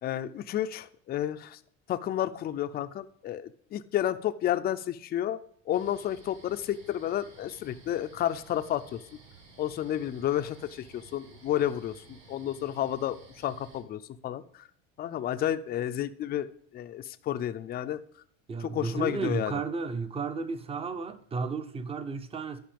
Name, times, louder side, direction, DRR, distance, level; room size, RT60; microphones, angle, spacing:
voice 1, 0.0-1.6 1.9-5.4 5.7-9.0 9.6-14.7 15.0-16.5 16.7-18.0 18.6-19.5, left 11 dB, 30° left, 0.5 m, -31 dB
sound 1, 5.7-13.8, right 4 dB, 65° right, 4.2 m, -54 dB
voice 2, 18.5-22.6, right 4 dB, 15° right, 0.6 m, -33 dB
10.5 x 5.4 x 5.2 m
cardioid pair, 135°, 35 cm